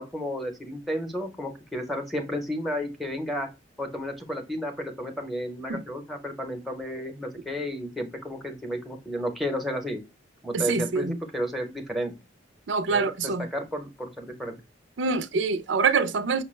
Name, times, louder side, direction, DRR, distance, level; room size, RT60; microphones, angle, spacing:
voice 1, 0.0-3.5 3.8-10.0 10.4-12.1 12.9-14.6, equal, ahead, 0.7 m, -32 dB
voice 2, 10.5-11.2 12.7-13.5 15.0-16.4, right 4 dB, 80° right, 0.4 m, -25 dB
5.7 x 2.1 x 3.1 m
head